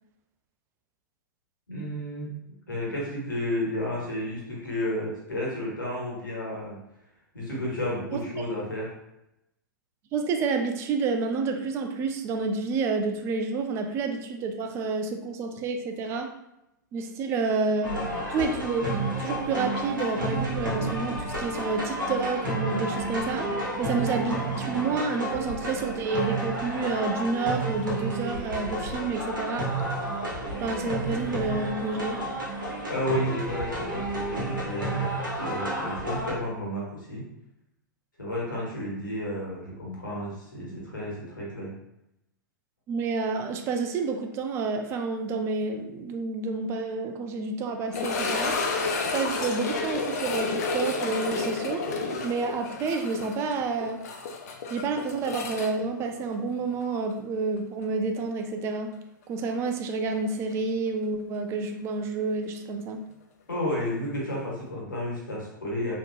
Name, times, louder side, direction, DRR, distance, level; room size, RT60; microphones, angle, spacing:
voice 1, 1.7-2.3 2.7-6.8 7.3-8.9 32.9-35.1 35.4-37.2 38.2-41.7 63.5-65.9, left 1 dB, 70° left, -5 dB, 1.3 m, -32 dB
voice 2, 10.1-16.3 16.9-18.0 18.3-23.5 23.8-29.7 30.6-32.2 42.9-48.5 49.1-51.9 52.2-54.0 54.7-58.9 59.3-63.0, right 4 dB, 25° right, 5 dB, 0.4 m, -29 dB
sound 1, 17.8-36.3, right 1 dB, 70° right, 1.0 m, -31 dB
sound 2, 47.9-56.9 57.1-57.2 57.8-57.9 60.5-60.6, left 4 dB, 50° left, 0.5 m, -31 dB
3.4 x 2.8 x 2.3 m, 0.87 s
figure-of-eight pair, 100°, 11 cm